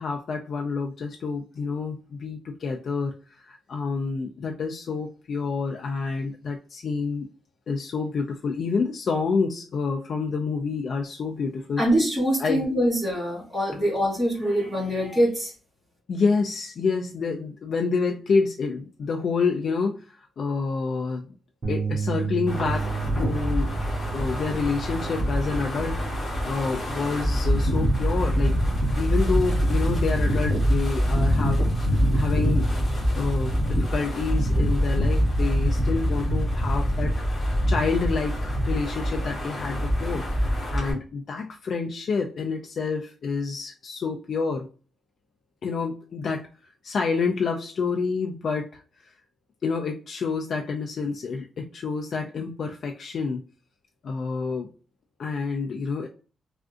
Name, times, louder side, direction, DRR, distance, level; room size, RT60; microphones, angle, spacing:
voice 1, 0.0-7.3 7.7-11.8 12.4-12.7 16.1-21.2 21.7-23.8 24.1-28.6 29.0-37.1 37.7-44.7 45.6-46.5 46.8-48.8 49.6-53.4 54.0-54.7 55.2-56.1, left 4 dB, 50° left, 2 dB, 0.3 m, -28 dB
voice 2, 11.8-15.5, equal, ahead, -6 dB, 1.3 m, -24 dB
sound 1, 21.6-27.9, right 6 dB, 35° right, 0.6 m, -33 dB
Wind, 22.5-40.9, equal, 25° left, 1.4 m, -24 dB
3.6 x 2.5 x 2.4 m, 0.36 s
wide cardioid pair, 165°, 0 cm